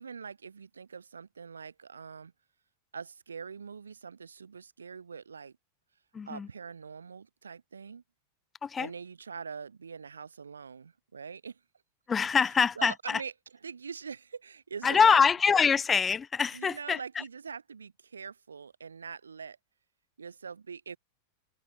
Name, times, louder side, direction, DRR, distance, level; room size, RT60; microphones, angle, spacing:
voice 1, 0.0-2.3 2.9-5.5 6.3-8.0 8.8-11.6 12.8-13.3 13.6-15.2 16.5-19.6 20.2-21.0, right 6 dB, 75° right, 6.7 m, -43 dB
voice 2, 6.1-6.5 8.6-8.9 12.1-13.2 14.8-17.0, left 6 dB, 20° left, 1.5 m, -24 dB
figure-of-eight pair, 90°, 0 cm